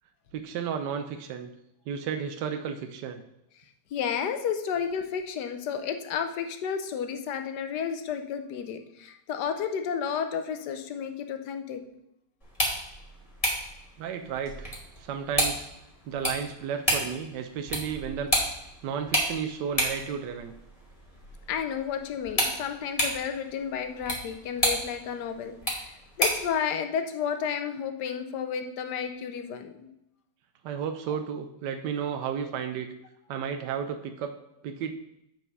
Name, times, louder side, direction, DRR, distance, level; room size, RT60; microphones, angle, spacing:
voice 1, 0.3-1.5 1.9-3.2 14.0-14.7 15.0-15.7 16.1-18.3 18.8-20.5 30.6-32.9 33.3-34.4 34.6-34.9, right 7 dB, 80° right, 6 dB, 1.3 m, -33 dB
voice 2, 3.9-11.8 21.5-29.9 31.1-31.2, left 7 dB, 75° left, 7 dB, 1.4 m, -32 dB
sound 1, 12.4-26.5, equal, 20° left, 2.2 m, -32 dB
8.2 x 4.5 x 5.4 m, 0.81 s
omnidirectional pair, 1.8 m